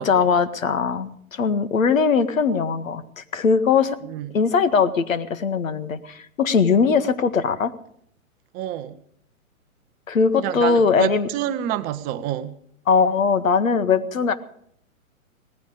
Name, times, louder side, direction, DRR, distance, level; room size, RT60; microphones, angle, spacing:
voice 1, 0.0-4.0 4.3-7.7 10.1-11.3 12.9-14.3, left 5 dB, 70° left, 12 dB, 1.8 m, -20 dB
voice 2, 8.5-9.0 10.4-12.6, right 12 dB, 20° right, 10 dB, 0.7 m, -28 dB
18.5 x 15.0 x 5.1 m, 0.68 s
figure-of-eight pair, 125°, 42 cm